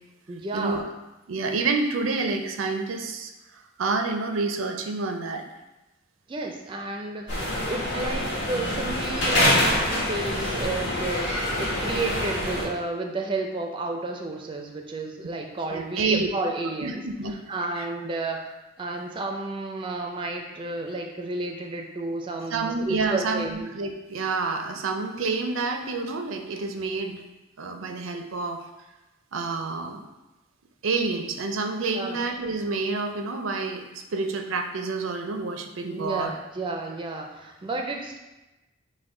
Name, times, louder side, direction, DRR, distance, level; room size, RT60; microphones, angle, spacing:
voice 1, 0.3-0.8 6.3-17.0 17.3-23.7 31.9-32.2 35.8-38.2, right 2 dB, 25° right, 2 dB, 0.4 m, -32 dB
voice 2, 1.3-3.3 3.8-5.4 15.7-16.3 16.8-17.3 17.8-17.9 22.5-27.2 27.6-28.6 29.3-30.0 30.8-36.3, right 3 dB, 90° right, 4 dB, 0.5 m, -28 dB
sound 1, 7.3-12.6, left 1 dB, 65° left, 1.5 m, -25 dB
5.8 x 2.2 x 3.7 m, 1.1 s
head